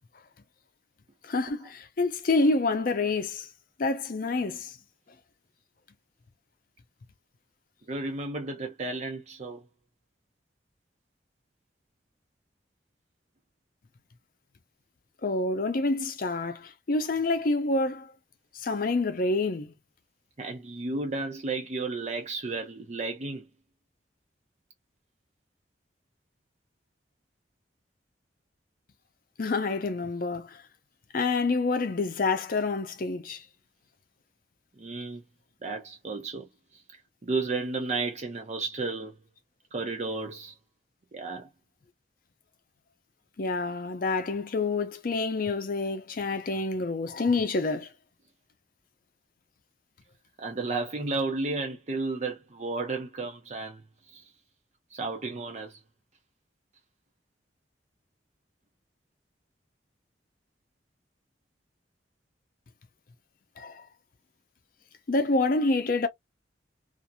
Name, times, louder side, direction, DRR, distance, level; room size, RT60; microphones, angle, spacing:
voice 1, 1.2-3.5 3.8-4.7 15.2-18.1 18.5-19.7 29.4-30.6 31.1-33.4 43.4-47.9 63.6-63.8 65.1-66.1, left 3 dB, 50° left, 0.5 m, -27 dB
voice 2, 7.9-9.6 15.9-16.1 20.4-23.5 34.8-35.2 35.6-36.5 37.2-39.1 39.7-40.5 41.1-41.5 50.4-53.8 54.1-54.3 54.9-55.8, right 3 dB, 40° right, 0.6 m, -33 dB
2.8 x 2.5 x 2.2 m
head